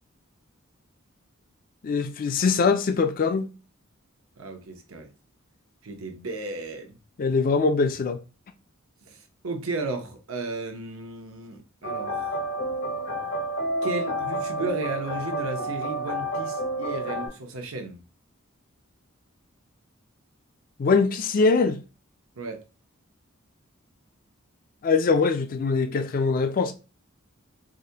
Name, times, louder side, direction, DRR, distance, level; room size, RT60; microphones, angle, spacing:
voice 1, 1.8-3.5 7.2-8.2 20.8-21.8 24.8-26.7, left 4 dB, 40° left, 0.4 m, -22 dB
voice 2, 4.4-5.1 5.8-7.0 9.1-9.2 9.4-12.3 13.8-18.0 22.4-22.6, right 3 dB, 80° right, 0.8 m, -34 dB
sound 1, 11.8-17.3, right 1 dB, 85° left, 1.6 m, -30 dB
4.9 x 2.1 x 2.8 m
head